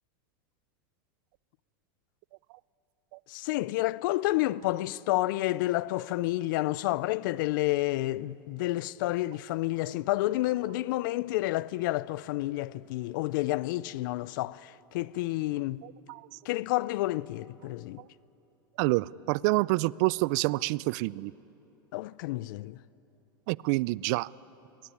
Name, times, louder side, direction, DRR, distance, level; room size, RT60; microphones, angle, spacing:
voice 1, 3.3-15.8 16.4-18.0 21.9-22.8, left 17 dB, 65° left, 0.5 m, -30 dB
voice 2, 15.8-16.3 18.8-21.3 23.5-24.3, right 22 dB, 55° right, 0.4 m, -27 dB
23.0 x 17.0 x 9.6 m
hypercardioid pair, 110°, 12 cm